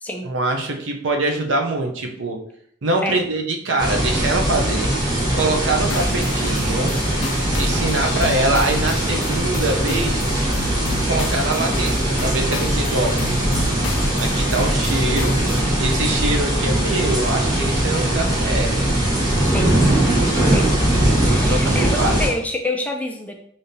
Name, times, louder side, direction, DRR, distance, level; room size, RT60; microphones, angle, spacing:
voice 1, 0.2-2.4 2.8-4.9 5.3-6.9 7.5-10.2 11.1-13.2 14.2-15.4 15.8-19.0 21.5-22.2, right 2 dB, 80° right, 2 dB, 0.7 m, -24 dB
sound 1, 3.8-22.3, right 1 dB, 20° right, 1.0 m, -20 dB
sound 2, 5.8-15.6, left 8 dB, 85° left, 0.3 m, -35 dB
voice 2, 21.2-23.3, left 1 dB, 10° left, 2 dB, 0.4 m, -26 dB
5.1 x 2.7 x 2.7 m, 0.67 s
head